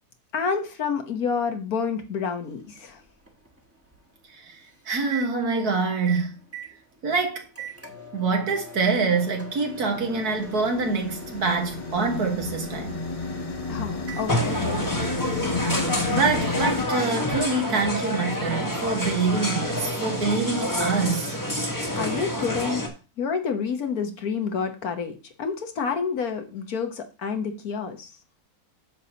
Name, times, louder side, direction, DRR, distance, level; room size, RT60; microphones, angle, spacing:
voice 1, 0.3-3.0 13.7-15.3 22.0-22.8 23.2-28.1, left 6 dB, 65° left, 1.6 m, -29 dB
Microwave oven, 2.4-18.1, right 1 dB, 10° right, 1.3 m, -43 dB
voice 2, 4.3-6.4 7.0-7.5 8.1-13.0 16.1-21.4, right 4 dB, 70° right, 2.1 m, -25 dB
sound 1, 9.7-16.8, left 3 dB, 30° left, 0.7 m, -31 dB
sound 2, 14.3-22.9, left 1 dB, 15° left, 1.3 m, -28 dB
9.4 x 6.8 x 2.9 m
omnidirectional pair, 1.7 m